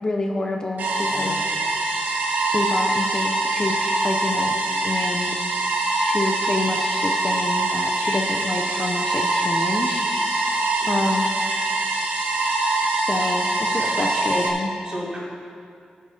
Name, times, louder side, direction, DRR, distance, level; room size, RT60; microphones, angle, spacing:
voice 1, 0.0-1.4 2.5-4.6 4.8-5.4 6.0-10.1 10.9-11.3 12.9-14.7, left 2 dB, 25° left, 3 dB, 0.6 m, -28 dB
sound 1, 0.8-14.5, right 2 dB, 90° right, 1.5 m, -23 dB
voice 2, 1.1-1.4 10.5-10.9 13.7-13.9 14.8-15.2, right 1 dB, 30° right, -6 dB, 3.1 m, -35 dB
13.5 x 8.3 x 4.3 m, 2.4 s
wide cardioid pair, 135°, 3 cm